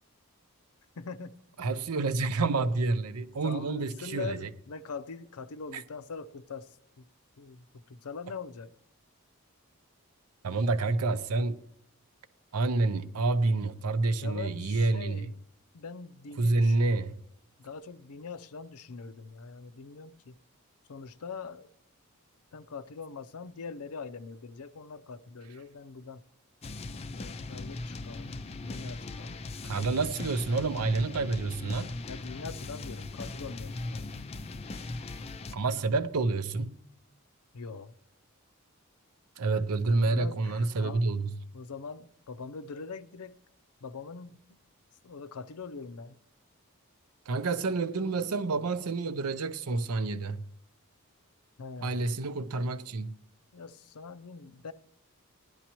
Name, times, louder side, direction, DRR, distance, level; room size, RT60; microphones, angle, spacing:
voice 1, 1.0-1.4 3.4-7.1 7.4-8.7 14.2-15.4 15.7-16.9 17.6-20.4 20.9-21.7 22.5-26.2 27.1-29.4 32.1-34.3 37.5-37.9 40.0-41.1 41.5-43.4 43.8-44.6 45.0-46.2 51.6-52.2 53.5-54.7, left 4 dB, 80° left, 0.5 m, -42 dB
voice 2, 1.6-4.4 5.7-5.8 10.4-11.6 12.5-15.2 16.4-17.2 29.6-31.9 35.5-36.8 39.4-41.3 47.3-50.4 51.8-53.2, right 3 dB, 85° right, 0.6 m, -28 dB
sound 1, 26.6-35.6, left 2 dB, 25° left, 0.4 m, -39 dB
18.5 x 11.5 x 3.0 m
head